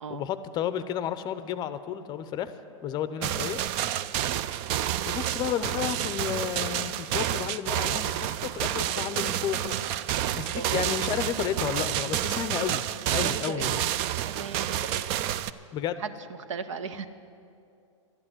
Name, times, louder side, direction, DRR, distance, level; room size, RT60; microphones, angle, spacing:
voice 1, 0.1-2.5 2.8-3.6 5.1-12.8 13.1-13.8 15.7-16.0, left 10 dB, 25° left, 12 dB, 0.6 m, -32 dB
sound 1, 3.2-15.5, right 12 dB, 35° right, 0.4 m, -29 dB
voice 2, 10.5-11.0 13.1-13.7 14.2-15.0 16.0-16.1 16.5-17.1, right 6 dB, 75° right, 11 dB, 0.9 m, -36 dB
12.0 x 8.7 x 9.8 m, 2.5 s
hypercardioid pair, 130°, 16 cm